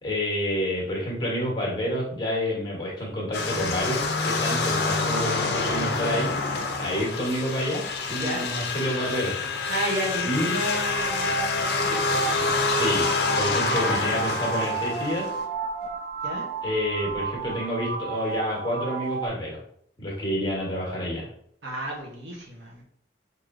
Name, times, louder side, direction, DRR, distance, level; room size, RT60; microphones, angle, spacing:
voice 1, 0.0-6.3 6.8-9.3 10.2-10.7 12.6-13.1 13.4-15.3 16.6-19.6 20.0-21.3, equal, 25° left, -2 dB, 1.0 m, -28 dB
sound 1, 3.3-15.4, left 4 dB, 60° left, 0.5 m, -27 dB
voice 2, 8.1-8.5 9.7-12.8 16.2-16.5 21.6-22.8, right 1 dB, 80° right, 0 dB, 0.9 m, -33 dB
sound 2, 10.9-19.3, right 4 dB, 55° right, 0.5 m, -32 dB
4.7 x 2.7 x 2.5 m, 0.66 s
head